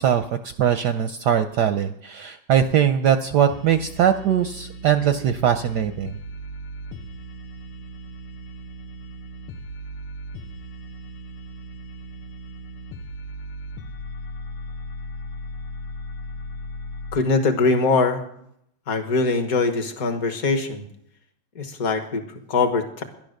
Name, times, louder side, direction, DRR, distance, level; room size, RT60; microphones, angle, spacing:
voice 1, 0.0-6.1, right 9 dB, 70° right, 9 dB, 1.0 m, -21 dB
sound 1, 3.5-17.2, equal, 90° left, 1.8 m, -37 dB
voice 2, 17.1-18.2 18.9-20.8 21.5-23.0, left 4 dB, 45° left, 6 dB, 1.6 m, -22 dB
12.5 x 11.0 x 6.5 m, 0.74 s
omnidirectional pair, 2.3 m